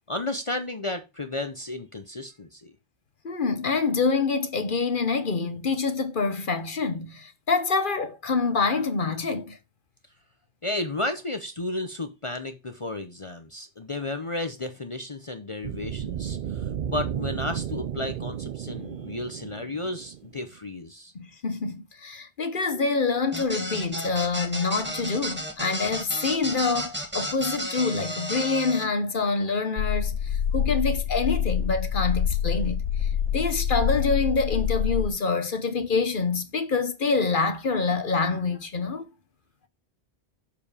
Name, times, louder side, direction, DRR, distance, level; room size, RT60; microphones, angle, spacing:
voice 1, 0.1-2.7 10.6-21.1, left 2 dB, 30° left, 0.8 m, -33 dB
voice 2, 3.2-9.6 21.1-39.1, left 4 dB, 50° left, 1.2 m, -26 dB
sound 1, 15.6-20.6, right 9 dB, 55° right, 0.6 m, -33 dB
sound 2, 23.3-28.8, equal, 10° right, 1.7 m, -33 dB
sound 3, 29.8-35.1, left 8 dB, 90° left, 0.9 m, -26 dB
7.1 x 5.2 x 4.9 m
omnidirectional pair, 1.1 m